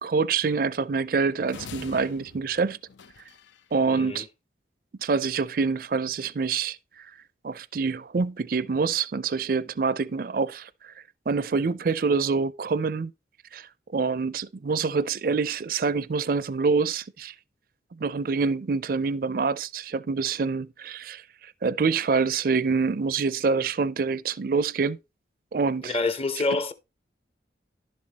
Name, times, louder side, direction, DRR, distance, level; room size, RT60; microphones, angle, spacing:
voice 1, 0.0-2.8 3.7-4.3 5.0-7.1 7.4-10.9 11.3-13.1 13.5-17.3 18.0-25.0 25.5-26.0, right 4 dB, 50° right, 0.4 m, -26 dB
sound 1, 1.5-3.7, left 5 dB, 85° left, 0.6 m, -45 dB
voice 2, 3.9-4.2 25.8-26.7, left 3 dB, 30° left, 0.7 m, -27 dB
11.0 x 7.3 x 2.9 m
head